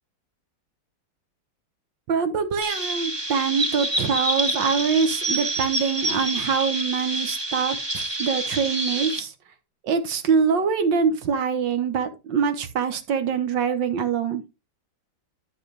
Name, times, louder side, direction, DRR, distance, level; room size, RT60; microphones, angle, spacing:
voice 1, 2.1-9.3 9.8-14.4, right 6 dB, 70° right, 1.8 m, -24 dB
Chirp tweet, 2.6-9.2, right 1 dB, 20° right, 0.7 m, -27 dB
12.0 x 5.0 x 3.4 m
omnidirectional pair, 2.1 m